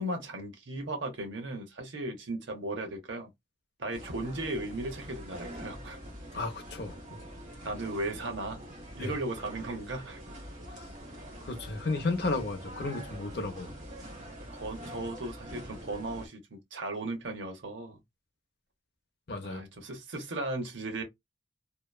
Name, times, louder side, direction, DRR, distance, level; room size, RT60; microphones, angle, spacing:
voice 1, 0.0-3.3 3.8-6.0 7.6-8.6 8.9-10.2 14.5-18.0 19.4-21.0, right 2 dB, 70° right, 0.8 m, -36 dB
sound 1, 3.9-16.3, equal, 40° right, 1.0 m, -45 dB
voice 2, 6.3-7.0 9.0-9.1 11.4-13.7 19.3-19.6, left 3 dB, 55° left, 0.6 m, -33 dB
2.8 x 2.1 x 2.3 m
head